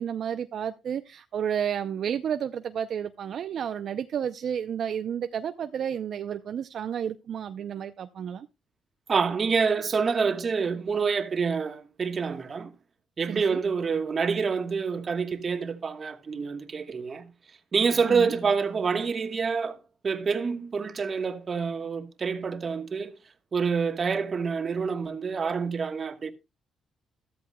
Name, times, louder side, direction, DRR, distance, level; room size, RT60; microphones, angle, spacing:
voice 1, 0.0-8.5 13.3-13.6 18.0-18.3, right 8 dB, 60° right, 0.5 m, -31 dB
voice 2, 9.1-12.7 13.2-17.3 17.7-19.8 20.0-23.1 23.5-26.3, right 5 dB, 40° right, 1.2 m, -27 dB
13.5 x 13.0 x 2.2 m
cardioid pair, 90°, 0 cm